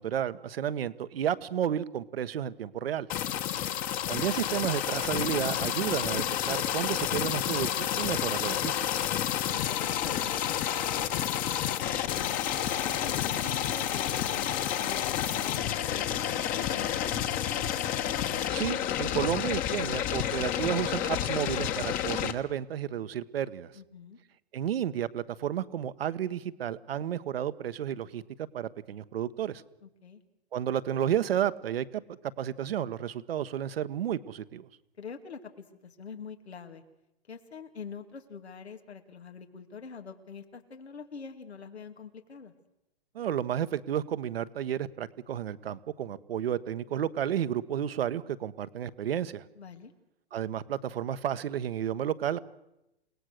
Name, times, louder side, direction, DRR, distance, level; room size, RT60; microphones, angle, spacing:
voice 1, 0.0-3.1 4.1-8.7 18.5-23.7 24.5-29.6 30.5-32.0 32.4-34.7 43.1-49.4 50.3-52.4, right 10 dB, 65° right, 14 dB, 1.3 m, -32 dB
sound 1, 3.1-22.3, left 10 dB, 25° left, 1.4 m, -30 dB
voice 2, 9.5-12.5 12.8-17.8 23.7-24.2 29.8-30.2 35.0-36.8 37.3-42.5 49.6-49.9, left 6 dB, 85° left, 5 dB, 2.7 m, -45 dB
29.0 x 18.0 x 6.7 m, 0.89 s
hypercardioid pair, 135°, 32 cm